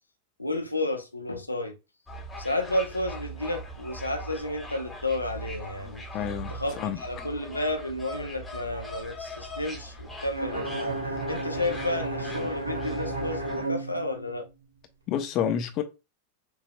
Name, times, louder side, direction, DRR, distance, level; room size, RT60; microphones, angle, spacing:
voice 1, 0.4-1.7 2.4-6.0 6.5-11.0 11.3-14.4, left 1 dB, 85° left, 0.8 m, -31 dB
sound 1, 2.1-13.6, equal, 10° left, 1.3 m, -41 dB
voice 2, 6.1-7.0 15.1-15.8, left 9 dB, 35° left, 0.9 m, -29 dB
Bowed string instrument, 10.3-14.5, right 2 dB, 70° right, 1.6 m, -33 dB
6.7 x 2.9 x 2.3 m
figure-of-eight pair, 90°, 0 cm